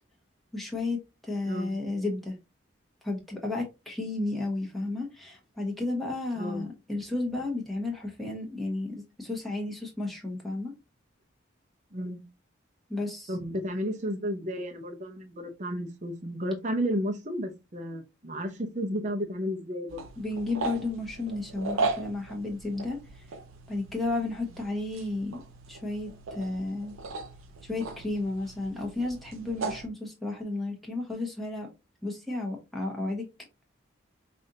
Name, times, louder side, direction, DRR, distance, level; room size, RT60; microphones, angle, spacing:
voice 1, 0.5-2.4 3.0-10.7 12.9-13.3 20.2-23.2 23.7-25.4 25.7-26.9 27.6-31.7 32.0-33.3, left 2 dB, ahead, 1.1 m, -33 dB
voice 2, 6.4-6.7 11.9-12.2 13.3-20.0, equal, 35° right, 0.7 m, -32 dB
sound 1, 19.9-29.9, right 3 dB, 90° right, 0.5 m, -37 dB
5.2 x 2.5 x 2.7 m
head